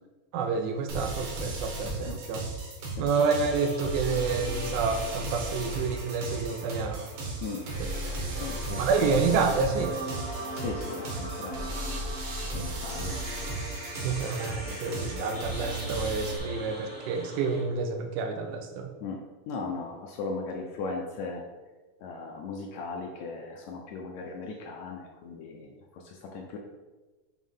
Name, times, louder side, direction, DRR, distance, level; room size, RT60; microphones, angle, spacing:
voice 1, 0.3-2.4 3.0-7.1 8.0-8.4 8.8-10.0 14.0-18.9, right 5 dB, 80° right, 5 dB, 2.1 m, -29 dB
sound 1, 0.9-16.4, right 2 dB, 55° right, 1.7 m, -35 dB
sound 2, 3.1-17.6, right 1 dB, 40° right, 0.9 m, -41 dB
voice 2, 8.4-9.2 10.5-11.7 12.3-13.2 14.7-15.2 19.0-19.2 19.5-21.4 22.0-26.6, left 4 dB, 75° left, 1 dB, 1.8 m, -38 dB
7.2 x 3.1 x 5.5 m, 1.2 s
omnidirectional pair, 3.8 m